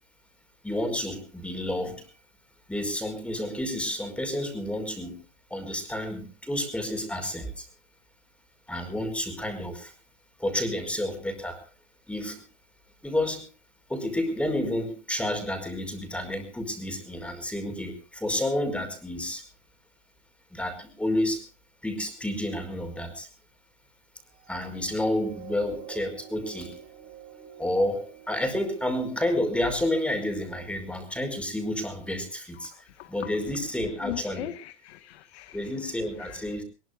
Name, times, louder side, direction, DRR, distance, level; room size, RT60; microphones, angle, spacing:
voice 1, 0.6-2.0 2.7-5.2 5.5-7.7 8.7-9.9 10.4-11.6 12.1-12.4 13.0-13.4 13.9-19.4 20.5-21.4 21.8-23.3 24.5-26.8 27.6-32.7 33.1-34.5 35.5-36.6, left 1 dB, 5° left, 5.0 m, -30 dB
sound 1, 24.3-31.0 31.6-31.8, right 9 dB, 30° right, 4.2 m, -48 dB
voice 2, 32.6-33.3 34.0-35.7 36.2-36.5, left 14 dB, 75° left, 1.7 m, -40 dB
22.0 x 21.5 x 2.6 m
supercardioid pair, 135°, 32 cm